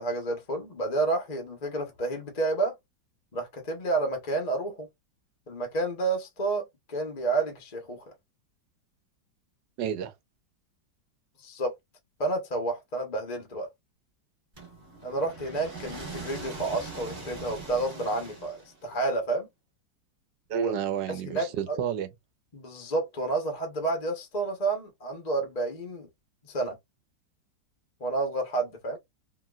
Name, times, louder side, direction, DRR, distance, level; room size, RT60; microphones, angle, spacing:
voice 1, 0.0-2.7 3.3-4.9 5.5-8.1 11.4-11.7 12.2-13.7 15.0-19.5 20.5-20.7 21.1-21.8 22.5-26.1 26.5-26.8 28.0-29.0, right 2 dB, 45° left, 0.5 m, -30 dB
voice 2, 9.8-10.1 20.5-22.1, right 8 dB, 70° right, 1.2 m, -30 dB
sound 1, 14.6-19.0, right 3 dB, 30° right, 1.1 m, -41 dB
3.0 x 2.7 x 2.3 m
omnidirectional pair, 2.1 m